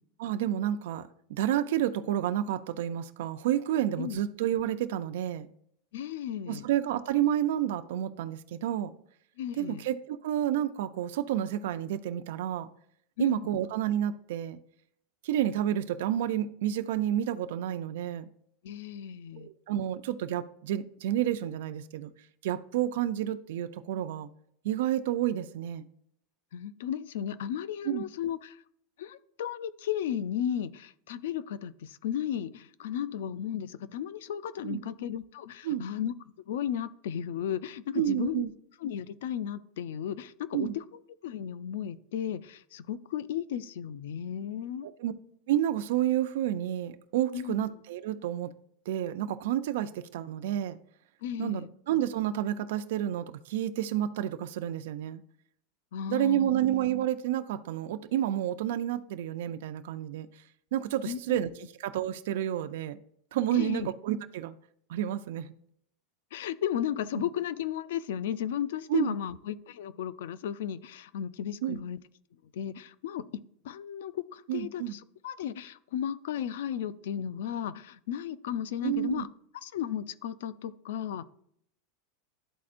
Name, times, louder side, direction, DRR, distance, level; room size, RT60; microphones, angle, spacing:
voice 1, 0.2-5.5 6.5-8.9 9.6-12.7 13.2-14.6 15.2-18.3 19.4-22.1 22.4-24.3 24.6-25.8 27.9-28.0 34.6-34.8 35.6-35.9 37.9-38.5 40.5-40.8 44.8-45.1 45.5-48.5 48.9-50.8 51.4-55.2 56.1-60.3 60.7-61.5 61.8-63.0 63.3-64.6 64.9-65.5 67.2-67.3 68.9-69.1 71.6-71.8 74.5-75.0 78.8-79.3, right 11 dB, 75° right, 9 dB, 0.4 m, -30 dB
voice 2, 5.9-6.6 9.4-9.8 13.2-13.6 18.6-19.5 26.5-28.6 29.0-36.1 36.5-38.4 38.8-40.8 41.2-44.9 47.3-47.6 51.2-51.7 55.9-56.6 61.0-61.4 63.5-63.9 66.3-72.0 72.5-73.2 73.6-79.3 79.6-81.2, left 9 dB, 80° left, 16 dB, 0.4 m, -34 dB
12.0 x 4.2 x 2.5 m, 0.69 s
supercardioid pair, 155°, 0 cm